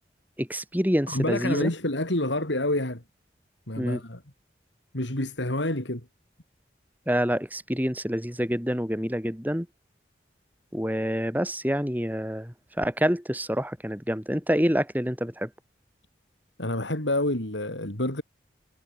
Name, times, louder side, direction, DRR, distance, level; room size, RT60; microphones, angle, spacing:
voice 1, 0.4-1.7 3.8-4.0 7.1-9.7 10.7-15.5, equal, 10° right, 4.8 m, -27 dB
voice 2, 1.1-3.0 3.7-4.2 4.9-6.1 16.6-18.2, left 1 dB, 85° left, 4.6 m, -28 dB
head